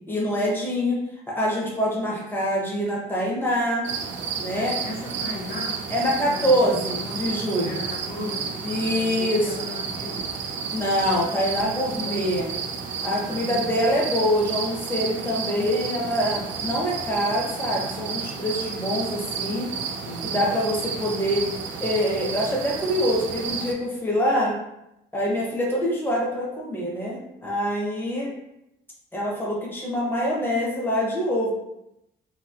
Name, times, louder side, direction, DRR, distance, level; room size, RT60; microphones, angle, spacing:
voice 1, 0.1-1.0 1.3-3.9 4.4-4.7 5.9-7.8 8.6-9.5 10.7-12.5 13.0-19.7 20.2-21.5 21.8-24.6 25.1-28.3 29.1-31.5, equal, 10° left, -3 dB, 0.9 m, -25 dB
sound 1, 3.8-23.7, right 5 dB, 70° right, 0.5 m, -32 dB
voice 2, 4.5-7.3 7.6-10.3 11.8-12.4 13.1-13.6 19.9-20.4, left 3 dB, 55° left, -2 dB, 0.6 m, -37 dB
2.8 x 2.7 x 2.5 m, 0.86 s
cardioid pair, 90°, 20 cm